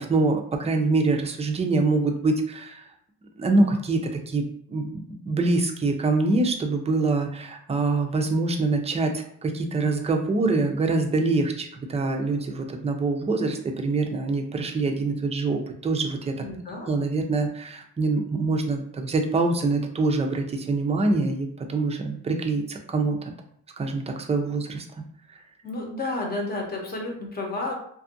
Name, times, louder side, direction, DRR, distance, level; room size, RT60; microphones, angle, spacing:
voice 1, 0.0-2.9 3.4-4.4 4.7-16.4 16.9-23.2 23.8-24.8, right 3 dB, 20° right, 3 dB, 0.5 m, -25 dB
voice 2, 16.4-16.9 25.6-27.7, left 2 dB, 30° left, 0 dB, 0.9 m, -31 dB
2.6 x 2.4 x 2.6 m, 0.65 s
cardioid pair, 90°, 30 cm